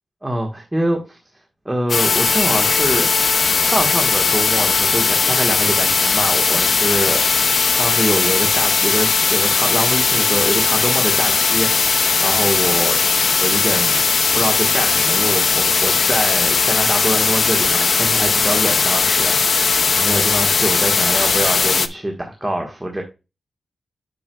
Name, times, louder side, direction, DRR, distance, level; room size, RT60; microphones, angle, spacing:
voice 1, 0.2-1.2 1.6-3.1 3.5-7.2 7.8-14.0 14.3-23.0, right 1 dB, 10° right, 1.4 m, -24 dB
sound 1, 1.9-21.9, left 5 dB, 55° left, 0.5 m, -17 dB
9.1 x 6.2 x 2.3 m
wide cardioid pair, 120°, 0 cm